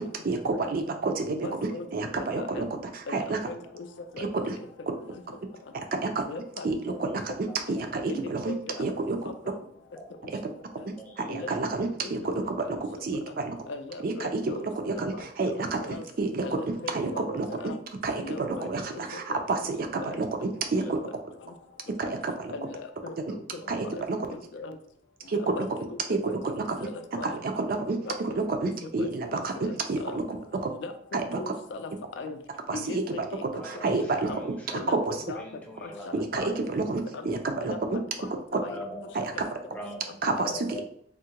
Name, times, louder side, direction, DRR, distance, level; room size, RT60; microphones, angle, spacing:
voice 1, 0.2-2.7 3.1-3.4 4.2-4.6 6.0-6.2 6.6-8.5 8.8-9.3 10.3-10.4 10.8-13.6 14.0-14.4 14.8-16.4 16.9-17.5 18.0-21.0 22.0-22.5 23.7-24.2 25.3-25.7 26.1-26.9 27.2-30.7 31.1-31.4 32.7-33.0 33.4-34.3 34.9-35.2 36.1-38.0 38.5-38.6 39.1-39.3 40.2-40.7, right 3 dB, 50° right, 5 dB, 0.4 m, -29 dB
voice 2, 1.2-1.9 2.2-2.7 3.1-3.9 4.1-4.3 6.3-6.7 8.1-8.8 11.3-11.5 12.0-12.1 13.7-14.7 15.1-15.2 15.5-16.0 16.4-17.2 17.6-17.8 18.2-19.0 19.3-19.4 20.0-20.2 20.9-21.1 22.0-22.1 22.5-23.4 23.9-24.1 24.3-24.8 25.3-26.0 26.3-26.4 26.8-27.4 28.1-28.2 29.0-29.7 30.0-30.2 30.8-31.9 32.2-32.4 32.7-33.0 33.3-33.5 33.7-33.8 34.3-34.4 34.7-35.4 35.8-36.5 37.1-37.2 37.6-37.7 38.2-38.3 38.6-38.8 40.5-40.6, left 3 dB, 65° left, 7 dB, 0.4 m, -39 dB
voice 3, 6.9-8.1 8.8-9.0 10.0-10.1 11.0-11.5 11.8-11.9 18.6-18.9 20.6-20.9 22.2-22.3 23.5-23.6 33.5-34.8 35.3-36.7 37.7-37.9 38.6-39.1 39.6-40.8, equal, 5° left, -1 dB, 0.5 m, -43 dB
3.5 x 2.1 x 2.8 m, 0.66 s
head